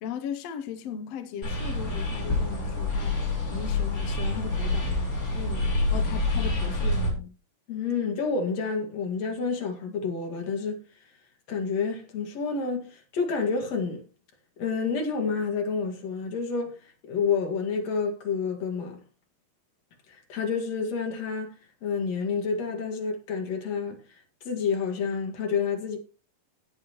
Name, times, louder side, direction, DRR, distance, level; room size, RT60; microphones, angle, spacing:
voice 1, 0.0-4.9 5.3-7.3, left 7 dB, 75° left, 1.5 m, -37 dB
sound 1, 1.4-7.1, left 2 dB, 25° left, 4.5 m, -27 dB
voice 2, 7.7-10.8 11.5-14.0 14.6-16.8 17.0-19.0 20.3-21.5 21.8-24.0 24.4-26.0, left 5 dB, 50° left, 2.9 m, -29 dB
17.0 x 8.0 x 3.0 m
omnidirectional pair, 4.0 m